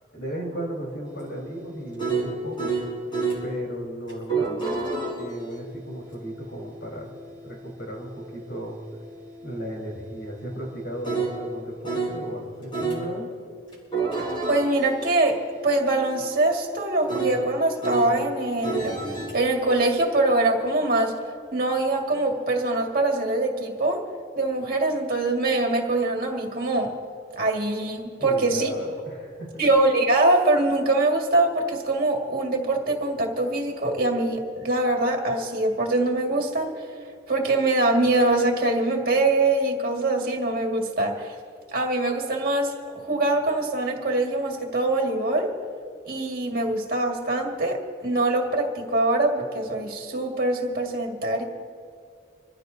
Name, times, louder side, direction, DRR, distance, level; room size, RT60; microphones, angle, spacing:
voice 1, 0.1-2.7 3.4-7.1 7.4-8.8 9.4-13.3 28.2-29.7, right 1 dB, 70° left, -1 dB, 4.1 m, -35 dB
sound 1, 1.1-3.4 4.1-12.2 12.7-13.0 13.7-18.2 18.6-19.3, right 4 dB, 25° left, 4.5 m, -32 dB
voice 2, 14.5-19.0 19.3-21.2 21.5-24.0 24.4-26.9 27.3-28.7 29.6-36.7 37.3-41.4 41.7-45.6 46.1-51.4, right 2 dB, 50° right, 1 dB, 2.0 m, -23 dB
26.5 x 15.0 x 2.8 m, 2.2 s
head